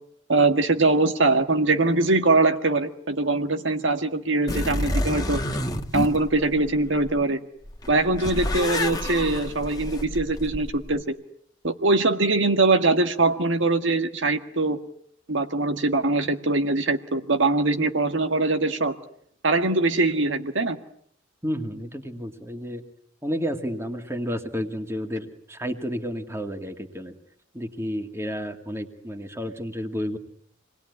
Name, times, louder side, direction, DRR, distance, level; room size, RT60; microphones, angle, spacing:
voice 1, 0.3-5.4 5.9-7.4 7.9-11.1 11.6-14.8 15.3-18.9 19.4-20.8, right 2 dB, 80° right, 6 dB, 1.9 m, -22 dB
sound 1, 4.5-7.2 7.7-11.0, left 1 dB, 20° left, 1.6 m, -29 dB
voice 2, 21.4-22.8 23.2-27.1 27.5-30.2, equal, 15° right, 5 dB, 2.2 m, -31 dB
27.5 x 20.0 x 9.7 m, 0.68 s
head